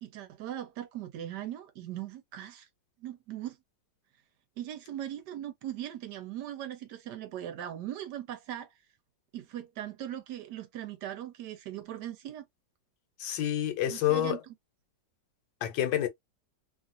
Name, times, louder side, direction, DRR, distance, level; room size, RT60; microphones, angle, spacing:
voice 1, 0.0-2.7 3.0-3.6 4.6-8.7 9.3-12.5 13.9-14.4, right 11 dB, 75° right, 1.2 m, -39 dB
voice 2, 13.2-14.4 15.6-16.1, left 11 dB, 85° left, 1.4 m, -28 dB
3.1 x 2.4 x 2.5 m
omnidirectional pair, 2.0 m